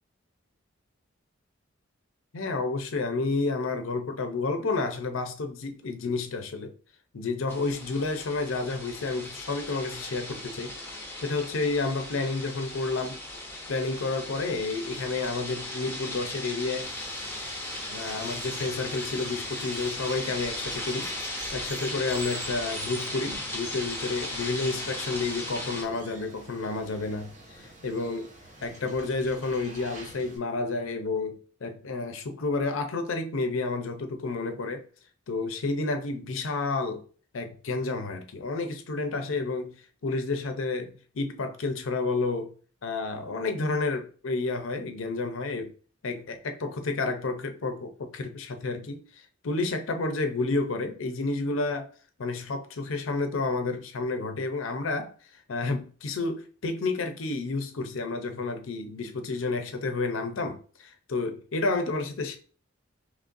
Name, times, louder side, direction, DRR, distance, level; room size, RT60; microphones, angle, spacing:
voice 1, 2.3-6.7 7.1-10.7 11.2-13.2 13.7-16.9 17.9-21.1 21.5-28.3 28.6-34.8 35.3-37.0 37.3-39.8 40.0-42.5 42.8-45.7 46.0-51.9 52.2-55.1 55.5-62.4, left 3 dB, 70° left, 0.6 m, -30 dB
sound 1, 7.5-25.8, left 1 dB, 10° left, 0.7 m, -37 dB
Water, 16.8-30.4, right 2 dB, 40° right, 0.8 m, -46 dB
3.8 x 3.1 x 2.6 m
head